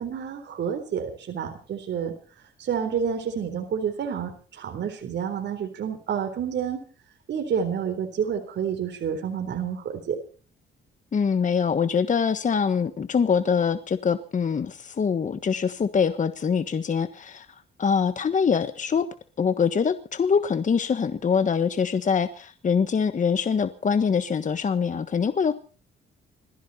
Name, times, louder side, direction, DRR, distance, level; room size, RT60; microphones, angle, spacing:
voice 1, 0.0-2.1 2.6-4.3 4.6-6.8 7.3-10.2, right 7 dB, 65° right, 5 dB, 4.0 m, -29 dB
voice 2, 11.1-17.5 17.8-19.1 19.4-25.5, left 6 dB, 40° left, 11 dB, 1.4 m, -24 dB
21.5 x 15.0 x 4.3 m, 0.39 s
cardioid pair, 90°, 20 cm